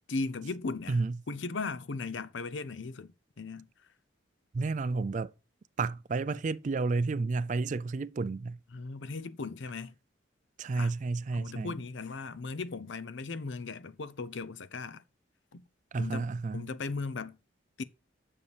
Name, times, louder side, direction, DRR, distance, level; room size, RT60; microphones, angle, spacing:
voice 1, 0.1-1.0 1.3-3.7 8.7-9.9 10.7-10.9 11.3-15.0 15.5-15.6 16.0-16.3 16.5-17.4 17.8-17.9, left 3 dB, 65° left, 0.6 m, -37 dB
voice 2, 4.5-5.3 5.8-8.6 10.6-11.7 15.9-16.7, right 3 dB, 40° right, 0.3 m, -31 dB
9.4 x 6.6 x 3.3 m
head